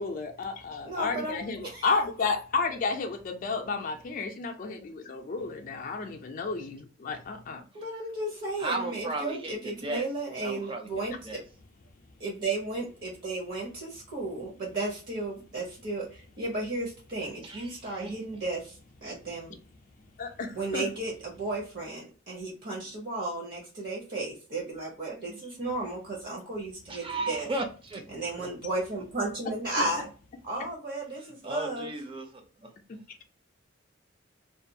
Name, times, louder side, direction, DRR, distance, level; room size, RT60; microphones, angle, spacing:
voice 1, 0.0-7.7 20.2-20.9 25.3-25.4 29.8-29.9 32.9-33.0, left 4 dB, 40° left, 0.4 m, -32 dB
voice 2, 0.8-1.8 7.7-11.4 12.2-19.6 20.5-27.5 28.1-30.1 30.4-31.9, right 2 dB, 50° right, 0.8 m, -34 dB
voice 3, 8.6-10.1 10.4-10.9 11.2-11.4 17.4-18.1 26.9-28.0 28.4-28.5 31.4-32.7, right 2 dB, 25° right, 0.5 m, -35 dB
2.5 x 2.3 x 2.6 m
head